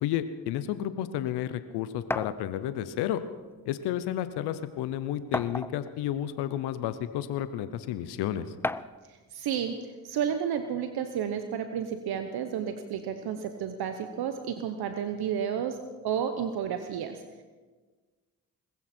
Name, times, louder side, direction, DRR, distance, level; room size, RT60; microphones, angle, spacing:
voice 1, 0.0-3.2 3.7-8.5, left 11 dB, 85° left, 12 dB, 0.8 m, -31 dB
sound 1, 2.1-2.4 3.5-3.6 4.0-4.1 5.3-6.0 6.8-6.9 8.6-9.0, left 2 dB, 5° left, 0.4 m, -32 dB
voice 2, 9.1-17.4, right 8 dB, 70° right, 8 dB, 1.1 m, -32 dB
20.5 x 15.5 x 4.4 m, 1.4 s
supercardioid pair, 55°, 39 cm